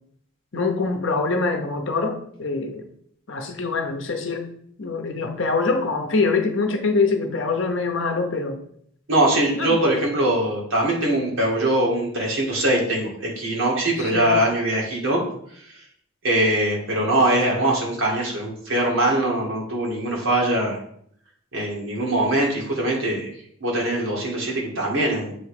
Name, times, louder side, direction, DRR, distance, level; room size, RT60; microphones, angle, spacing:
voice 1, 0.5-2.9 3.3-4.4 4.8-8.6 9.5-9.8 14.0-14.4, left 3 dB, 60° left, 5 dB, 0.9 m, -24 dB
voice 2, 9.1-15.2 16.2-20.8 21.5-23.3 23.6-25.4, right 1 dB, 65° right, -2 dB, 2.0 m, -22 dB
7.7 x 3.2 x 4.8 m, 0.66 s
head